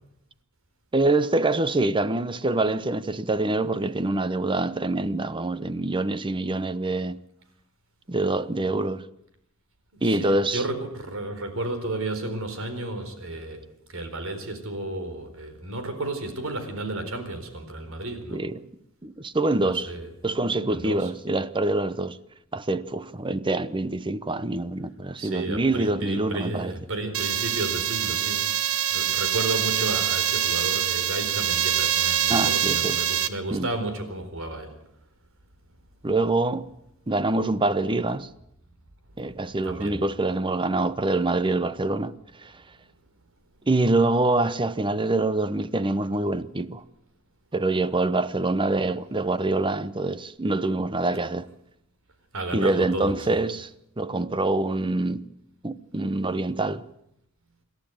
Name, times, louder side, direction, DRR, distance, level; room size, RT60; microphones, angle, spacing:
voice 1, 0.9-7.2 8.1-9.1 10.0-10.6 18.3-18.6 19.0-19.9 20.2-22.2 22.5-26.7 32.3-33.0 33.5-33.7 36.0-36.7 37.1-38.3 39.2-42.6 43.7-46.8 47.5-51.5 52.5-53.7 54.0-55.3 55.6-56.8, right 2 dB, 25° right, 0.8 m, -25 dB
voice 2, 10.0-13.6 13.9-18.4 19.6-20.1 20.7-21.1 25.2-28.5 28.9-34.7 39.6-40.0 52.3-53.4, right 2 dB, 65° right, 4.3 m, -32 dB
sound 1, 27.1-33.3, right 10 dB, 90° right, 1.3 m, -25 dB
27.0 x 12.0 x 9.1 m
head